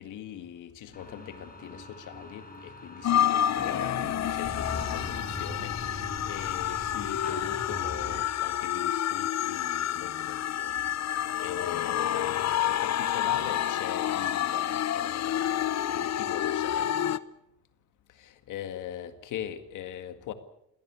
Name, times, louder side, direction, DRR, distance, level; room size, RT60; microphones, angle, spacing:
voice 1, 0.0-10.8 11.1-16.9 18.2-20.3, left 10 dB, 85° left, 2.1 m, -41 dB
sound 1, 0.9-8.2, left 2 dB, 30° left, 5.1 m, -40 dB
sound 2, 3.0-17.2, left 11 dB, 60° left, 0.9 m, -29 dB
21.5 x 17.5 x 8.4 m
cardioid pair, 90°, 30 cm